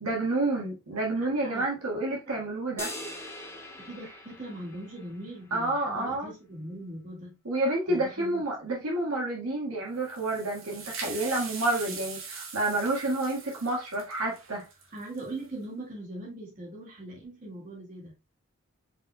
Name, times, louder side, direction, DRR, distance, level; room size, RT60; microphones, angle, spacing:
voice 1, 0.0-2.9 5.5-6.3 7.4-14.7, right 2 dB, 85° right, 1.6 m, -29 dB
voice 2, 1.3-1.6 2.3-2.4 3.8-7.4 7.9-8.8 14.9-18.2, right 1 dB, 35° right, 1.9 m, -41 dB
sound 1, 2.8-5.3, left 1 dB, 10° left, 0.7 m, -41 dB
sound 2, 9.9-15.5, right 5 dB, 65° right, 1.4 m, -41 dB
5.4 x 4.0 x 2.2 m
head